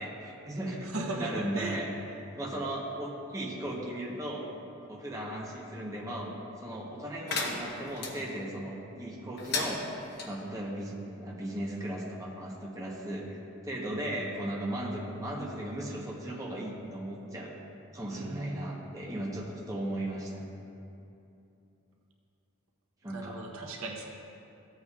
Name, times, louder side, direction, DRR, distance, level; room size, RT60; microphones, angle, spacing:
voice 1, 0.0-0.9 1.2-1.9 2.4-4.5 4.9-9.8 10.2-17.6 17.9-20.5 23.0-23.4, right 1 dB, 15° right, -3 dB, 0.9 m, -37 dB
voice 2, 0.8-1.8 18.1-18.8 23.1-24.1, right 2 dB, 75° right, 1 dB, 1.0 m, -37 dB
sound 1, 7.3-8.1 9.4-10.3, left 3 dB, 50° left, 1.0 m, -34 dB
14.5 x 8.1 x 2.4 m, 2.7 s
head